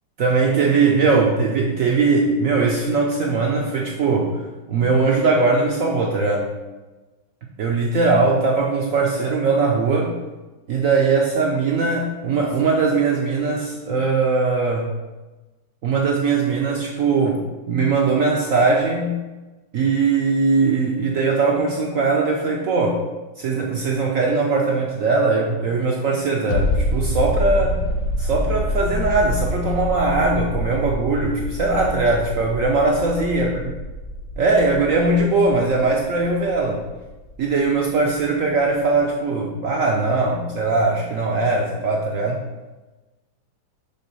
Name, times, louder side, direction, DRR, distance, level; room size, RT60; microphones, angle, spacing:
voice 1, 0.2-4.4 4.7-6.5 7.6-10.1 10.7-14.9 15.8-17.4 17.7-19.2 19.7-23.0 23.4-27.8 28.2-33.5 34.4-36.8 37.4-42.4, right 3 dB, 75° right, 0 dB, 0.7 m, -20 dB
sound 1, 26.5-37.8 38.1-38.2, left 1 dB, 90° left, 1.6 m, -27 dB
6.0 x 3.6 x 5.4 m, 1.2 s
omnidirectional pair, 2.2 m